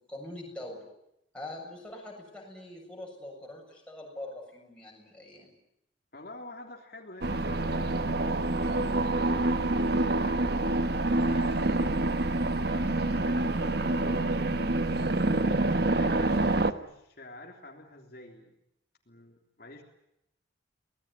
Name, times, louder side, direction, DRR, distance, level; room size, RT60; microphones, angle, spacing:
voice 1, 0.1-0.9 1.3-5.5 8.6-8.8, left 1 dB, 5° left, -1 dB, 7.4 m, -43 dB
voice 2, 6.1-8.1 8.3-10.6 11.2-14.6 15.5-18.5 19.1-19.8, left 2 dB, 50° left, 1 dB, 3.4 m, -48 dB
sound 1, 7.2-16.7, right 2 dB, 55° right, 1.2 m, -27 dB
25.0 x 19.5 x 9.6 m, 0.81 s
head